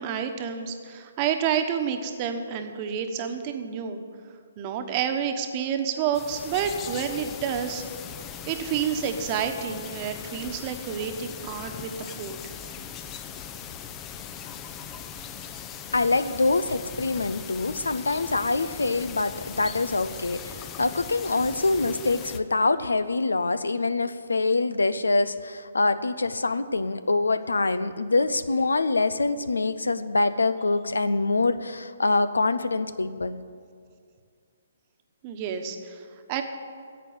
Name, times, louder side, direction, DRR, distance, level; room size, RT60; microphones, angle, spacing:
voice 1, 0.0-4.0 4.6-7.8 8.5-12.4 35.2-36.4, right 8 dB, 30° right, 6 dB, 1.2 m, -29 dB
sound 1, 6.1-22.4, left 8 dB, 20° left, 0.7 m, -40 dB
voice 2, 15.9-33.4, left 3 dB, 80° left, 14 dB, 0.6 m, -25 dB
11.0 x 8.2 x 9.6 m, 2.2 s
figure-of-eight pair, 135°, 0 cm